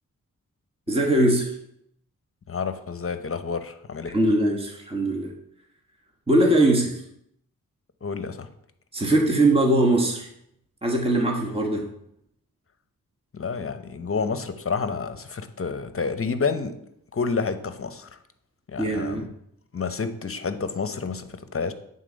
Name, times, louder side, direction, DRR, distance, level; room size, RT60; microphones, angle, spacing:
voice 1, 0.9-1.5 4.1-5.3 6.3-7.0 8.9-10.3 10.8-11.9 18.8-19.3, right 1 dB, 15° right, 0 dB, 1.3 m, -21 dB
voice 2, 2.5-4.2 8.0-8.5 13.3-16.8 17.1-18.1 18.7-19.3 19.7-21.7, left 5 dB, 40° left, 10 dB, 0.8 m, -29 dB
9.1 x 4.1 x 5.2 m, 0.76 s
cardioid pair, 55°, 34 cm